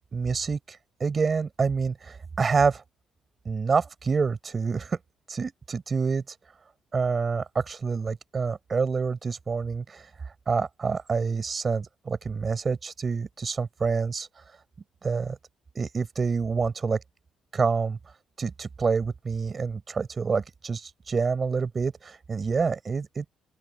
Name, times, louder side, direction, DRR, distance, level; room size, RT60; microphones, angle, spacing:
voice 1, 0.1-2.8 3.4-5.0 5.3-6.2 6.9-10.0 10.5-14.3 15.0-15.4 15.7-17.0 17.5-18.0 18.4-23.3, right 5 dB, 25° right, 7.7 m, -27 dB
open air
cardioid pair, 150°, 0 cm